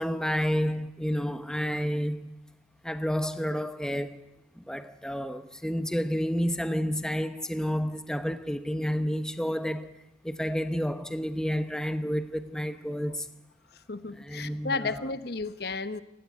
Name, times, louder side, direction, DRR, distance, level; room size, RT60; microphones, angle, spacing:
voice 1, 0.0-2.4 2.8-4.2 4.5-9.9 10.2-13.3 14.1-15.1, equal, 5° left, 1.0 m, -30 dB
voice 2, 13.9-16.0, left 3 dB, 55° left, 1.1 m, -33 dB
28.5 x 18.0 x 9.3 m
head